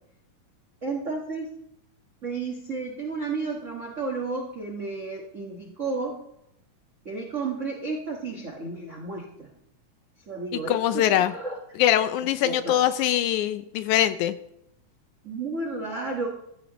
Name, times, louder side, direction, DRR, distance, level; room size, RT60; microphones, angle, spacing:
voice 1, 0.8-1.5 2.2-6.2 7.0-9.5 10.3-11.6 12.4-12.8 15.2-16.3, right 3 dB, 85° right, 1 dB, 0.6 m, -32 dB
voice 2, 10.7-11.3 11.8-14.4, left 12 dB, 80° left, 12 dB, 1.8 m, -22 dB
14.0 x 13.5 x 3.0 m, 0.79 s
omnidirectional pair, 3.7 m